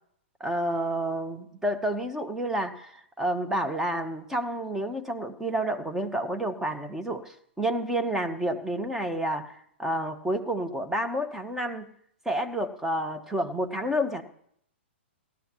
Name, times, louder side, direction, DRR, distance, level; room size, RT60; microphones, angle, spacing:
voice 1, 0.4-11.9 12.2-14.2, right 1 dB, 5° right, 7 dB, 1.0 m, -29 dB
18.0 x 12.5 x 3.0 m, 0.70 s
hypercardioid pair, 120°, 6 cm